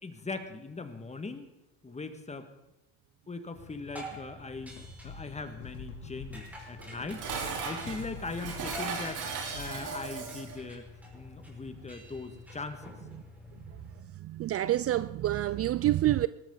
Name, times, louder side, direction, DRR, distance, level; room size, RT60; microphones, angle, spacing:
voice 1, 0.0-1.5 1.8-2.5 3.3-4.8 5.0-7.3 7.6-9.2 9.5-12.9, left 3 dB, 20° left, 1.8 m, -40 dB
sound 1, 3.5-14.0, left 2 dB, 5° right, 4.9 m, -48 dB
sound 2, 4.5-9.8, left 5 dB, 75° left, 2.6 m, -46 dB
Dishes pots and pans, 6.8-10.6, right 5 dB, 60° right, 3.7 m, -37 dB
voice 2, 14.2-16.3, right 14 dB, 40° right, 0.5 m, -27 dB
19.5 x 13.0 x 3.9 m
supercardioid pair, 85°, 35 cm